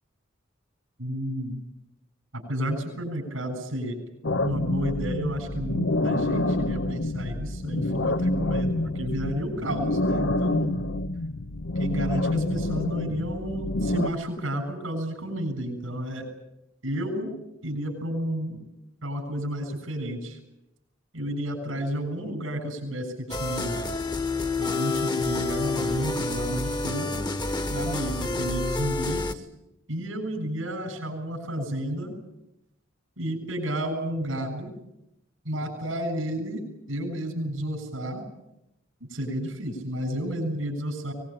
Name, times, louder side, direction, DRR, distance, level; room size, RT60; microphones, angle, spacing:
voice 1, 1.0-1.6 2.5-4.0 4.4-10.8 11.8-16.2 16.8-17.3 17.6-18.6 19.0-20.4 21.1-23.9 24.6-27.2 27.7-29.5 29.9-32.2 33.2-34.7 35.4-36.6 36.9-38.2 39.1-41.1, equal, 85° right, 5 dB, 7.2 m, -31 dB
sound 1, 4.2-14.1, left 1 dB, 70° left, 1.0 m, -27 dB
sound 2, 23.3-29.3, left 3 dB, 20° left, 1.2 m, -28 dB
23.5 x 20.5 x 8.8 m, 0.86 s
head